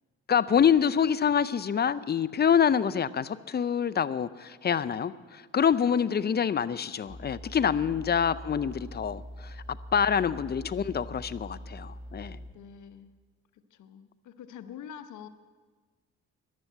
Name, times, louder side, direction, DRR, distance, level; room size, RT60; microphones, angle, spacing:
voice 1, 0.3-12.4, left 7 dB, 35° left, 15 dB, 0.6 m, -26 dB
voice 2, 5.8-6.3 7.4-8.2 12.5-13.1 13.5-15.3, left 8 dB, 75° left, 11 dB, 1.0 m, -47 dB
sound 1, 7.1-12.5, equal, 60° right, 6.3 m, -43 dB
14.0 x 11.0 x 8.0 m, 1.5 s
cardioid pair, 90°, 30 cm